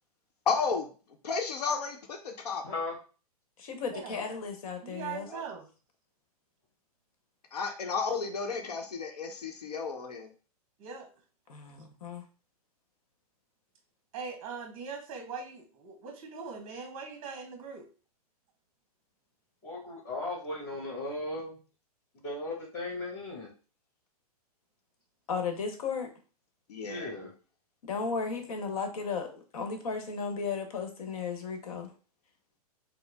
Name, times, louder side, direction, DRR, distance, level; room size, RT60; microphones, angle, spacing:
voice 1, 0.5-0.9 1.2-2.7 5.3-5.4 7.5-10.3 26.7-27.1, left 5 dB, 85° left, 4 dB, 0.8 m, -32 dB
voice 2, 2.6-3.0 19.6-21.5 22.2-23.5 26.8-27.3, left 2 dB, 25° left, -3 dB, 1.6 m, -36 dB
voice 3, 3.6-5.3 11.5-12.2 25.3-26.1 27.8-31.9, left 5 dB, 65° left, 5 dB, 1.0 m, -35 dB
voice 4, 4.8-5.7 10.8-11.1 14.1-17.9, right 5 dB, 30° right, 5 dB, 0.9 m, -41 dB
4.5 x 2.0 x 3.4 m, 0.37 s
hypercardioid pair, 135°, 20 cm